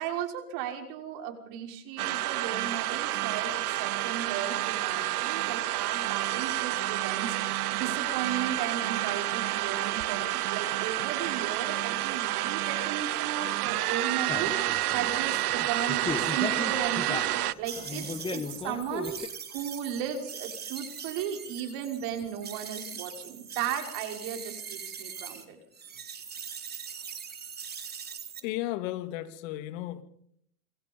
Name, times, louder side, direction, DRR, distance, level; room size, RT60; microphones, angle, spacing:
voice 1, 0.0-25.6, right 9 dB, 50° right, 4 dB, 6.0 m, -36 dB
sound 1, 2.0-17.5, right 16 dB, 75° right, 0.9 m, -29 dB
sound 2, 14.3-19.3, left 4 dB, 10° left, 1.6 m, -37 dB
sound 3, 17.6-25.4 25.7-28.4, right 7 dB, 20° right, 3.8 m, -42 dB
voice 2, 28.4-30.0, left 15 dB, 60° left, 9 dB, 3.0 m, -34 dB
27.5 x 24.0 x 5.6 m, 0.70 s
hypercardioid pair, 115°, 45 cm